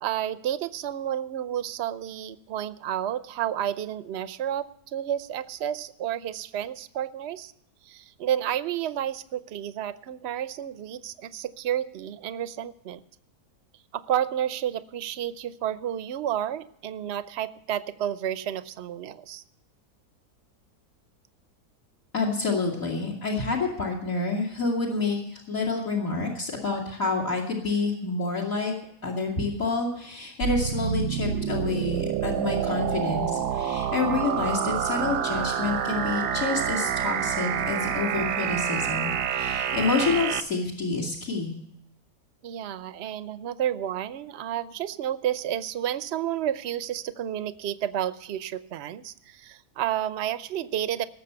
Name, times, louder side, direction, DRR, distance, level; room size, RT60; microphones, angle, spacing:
voice 1, 0.0-7.5 7.8-13.0 13.9-19.4 42.4-51.0, right 10 dB, 55° right, 14 dB, 0.8 m, -31 dB
voice 2, 22.1-28.7 29.0-41.5, left 3 dB, 55° left, 1 dB, 2.8 m, -28 dB
sound 1, 30.4-40.4, right 9 dB, 85° right, 1.3 m, -28 dB
18.5 x 7.3 x 6.8 m, 0.74 s
omnidirectional pair, 1.7 m